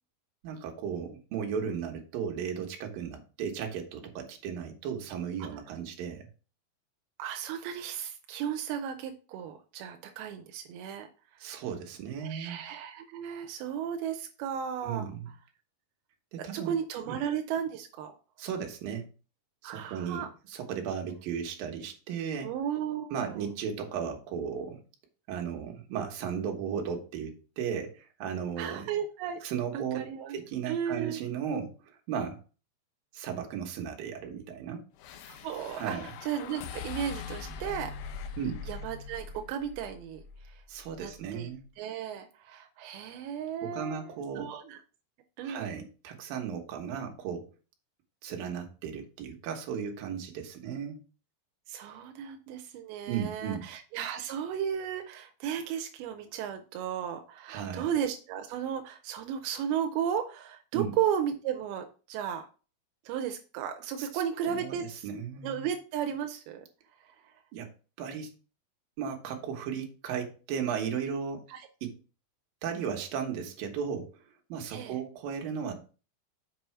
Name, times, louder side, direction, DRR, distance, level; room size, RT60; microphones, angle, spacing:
voice 1, 0.4-6.3 11.4-12.6 14.8-15.3 16.3-16.7 17.1-17.2 18.4-19.1 19.6-22.5 23.1-24.8 25.3-28.9 29.4-30.0 30.3-32.4 33.1-34.8 35.8-36.1 38.4-38.6 40.7-41.6 43.6-44.5 45.4-47.5 48.2-51.0 53.1-53.7 57.5-57.9 60.7-60.9 64.0-65.7 67.5-67.7 68.0-68.3 69.0-71.4 71.8-72.0 72.6-74.2 74.5-75.7, right 7 dB, 70° right, 4 dB, 3.0 m, -35 dB
voice 2, 7.2-11.1 11.3-11.5 12.2-15.1 16.4-18.2 19.6-20.3 22.4-23.4 28.6-29.4 29.7-30.4 30.7-31.2 35.3-37.9 38.7-40.6 41.0-41.5 41.8-44.8 45.4-45.7 51.7-62.5 63.1-65.1 65.4-66.7 71.5-71.6 74.7-75.0, right 9 dB, 90° right, 6 dB, 2.6 m, -34 dB
sound 1, 35.0-41.4, left 6 dB, 75° left, 2.5 m, -42 dB
6.9 x 5.5 x 4.5 m, 0.36 s
omnidirectional pair, 4.5 m